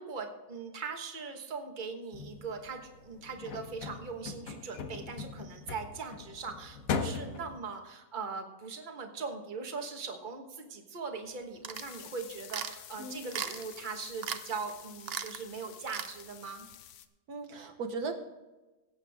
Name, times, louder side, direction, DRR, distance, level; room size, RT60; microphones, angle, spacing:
voice 1, 0.0-16.7, right 5 dB, 35° right, 4 dB, 1.4 m, -40 dB
sound 1, 2.1-7.6, left 5 dB, 65° left, 1.3 m, -39 dB
sound 2, 11.6-12.0 12.5-12.8 13.3-13.7 14.2-14.4 14.7-14.8 15.1-15.4 15.9-16.1, right 8 dB, 55° right, 0.7 m, -37 dB
sound 3, 11.7-17.1, left 11 dB, 85° left, 1.2 m, -50 dB
voice 2, 17.3-18.1, right 3 dB, 80° right, 5 dB, 1.6 m, -37 dB
17.5 x 8.1 x 3.5 m, 1.1 s
omnidirectional pair, 1.6 m